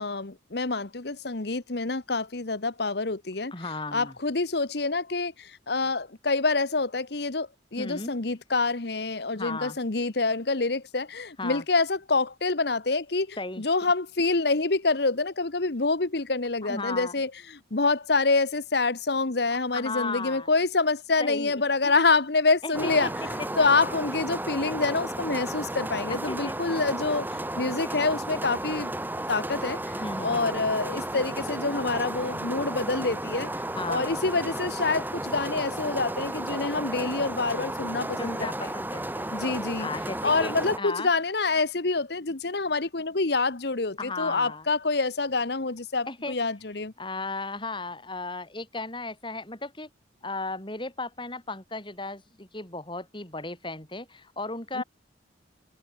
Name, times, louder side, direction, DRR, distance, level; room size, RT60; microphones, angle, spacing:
voice 1, 0.0-3.5 3.9-28.9 29.3-33.5 33.9-38.5 39.3-39.9 40.2-46.9 54.7-54.8, left 3 dB, 60° left, 1.2 m, -27 dB
voice 2, 3.5-4.1 7.8-8.1 9.3-9.8 11.4-11.6 13.4-13.6 16.6-17.1 19.7-20.5 21.2-21.5 21.8-21.9 22.6-22.9 23.6-23.7 26.1-26.6 29.9-30.5 33.8-34.2 38.2-39.3 39.8-41.1 44.0-44.7 46.1-46.3 47.0-49.9 50.2-54.8, left 3 dB, 25° left, 5.4 m, -35 dB
sound 1, 22.7-40.8, right 1 dB, 10° right, 3.2 m, -33 dB
head